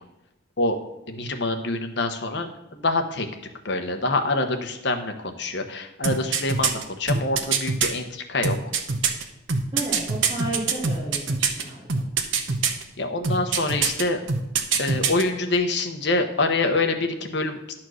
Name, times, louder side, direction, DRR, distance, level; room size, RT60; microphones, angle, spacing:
voice 1, 1.1-3.3 3.6-8.7 13.0-14.2 14.8-17.7, left 2 dB, 60° left, 6 dB, 0.9 m, -26 dB
sound 1, 6.0-7.9 8.4-11.6 11.9-12.8 13.2-14.0 14.3-15.2 15.5-15.6, right 5 dB, 75° right, 0.9 m, -23 dB
voice 2, 9.7-12.1, right 1 dB, 30° right, -10 dB, 2.6 m, -32 dB
11.0 x 4.4 x 6.3 m, 0.94 s
head